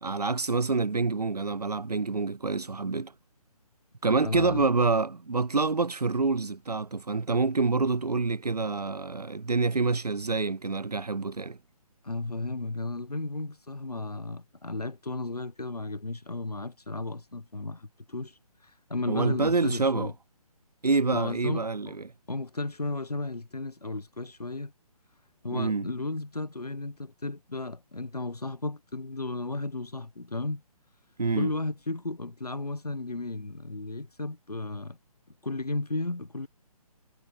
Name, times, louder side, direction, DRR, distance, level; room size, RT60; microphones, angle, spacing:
voice 1, 0.0-3.1 4.0-11.6 19.1-20.1 20.8-22.1 25.5-25.8 31.2-31.5, right 4 dB, 80° right, 0.6 m, -27 dB
voice 2, 4.2-4.7 12.0-20.1 21.1-22.0 22.3-24.7 25.4-30.6 31.3-35.0 35.4-36.5, left 2 dB, 80° left, 1.3 m, -34 dB
figure-of-eight pair, 140°, 20 cm